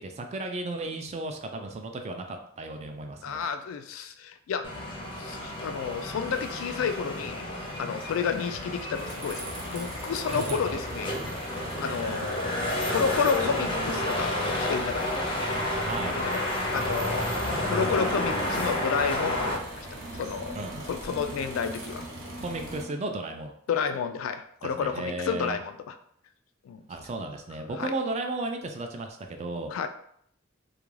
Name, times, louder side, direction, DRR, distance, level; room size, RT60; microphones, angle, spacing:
voice 1, 0.0-3.5 10.3-10.7 15.8-16.2 20.6-20.9 22.4-23.5 24.6-25.6 26.9-29.7, right 2 dB, 35° right, 5 dB, 0.3 m, -34 dB
voice 2, 3.2-4.7 5.2-7.5 7.8-9.4 9.7-11.2 11.8-12.5 12.9-15.1 15.5-15.7 16.1-16.4 16.7-17.3 17.7-20.6 20.9-22.1 23.7-25.9 26.6-26.8 27.8-27.9 29.7-29.9, left 6 dB, 90° left, 10 dB, 0.3 m, -31 dB
sound 1, 4.6-19.5, left 1 dB, 25° left, 0.5 m, -31 dB
sound 2, 8.9-22.9, right 1 dB, 80° right, 0.8 m, -41 dB
sound 3, 15.5-21.5, equal, 15° right, 0.7 m, -48 dB
2.4 x 2.2 x 3.1 m, 0.67 s
head